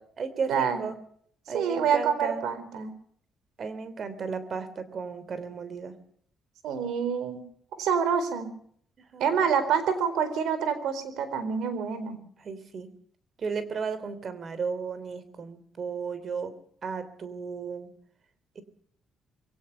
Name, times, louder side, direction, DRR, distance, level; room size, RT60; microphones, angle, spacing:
voice 1, 0.2-1.0 1.5-2.4 3.6-5.9 9.0-9.4 12.4-12.9 13.4-16.5 16.8-17.9 18.5-18.6, right 5 dB, 50° right, 13 dB, 3.3 m, -34 dB
voice 2, 1.5-2.9 6.6-7.4 7.8-8.5 9.2-12.2, right 7 dB, 85° right, 12 dB, 4.2 m, -27 dB
22.0 x 17.5 x 6.8 m, 0.63 s
cardioid pair, 90°, 0 cm